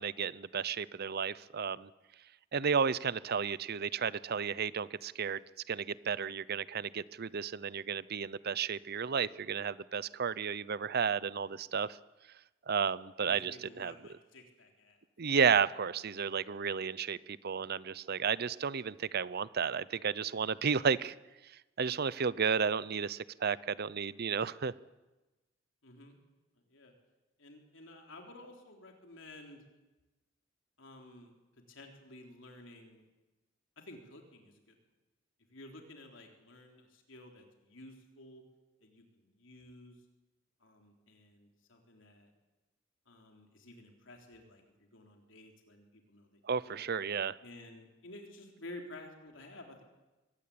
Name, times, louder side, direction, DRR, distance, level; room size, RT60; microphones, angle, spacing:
voice 1, 0.0-1.9 2.5-5.4 5.7-12.0 12.7-13.9 15.2-21.1 21.8-24.7 46.5-47.4, right 6 dB, 55° right, 19 dB, 0.7 m, -32 dB
voice 2, 13.2-15.0 25.8-26.2 26.7-26.9 27.4-29.6 30.8-31.3 31.7-33.0 33.8-34.8 35.5-38.4 38.8-39.9 40.6-42.3 43.1-46.4 46.7-46.8 47.4-49.8, left 1 dB, 75° left, 2 dB, 3.7 m, -52 dB
22.5 x 18.5 x 8.6 m, 1.1 s
head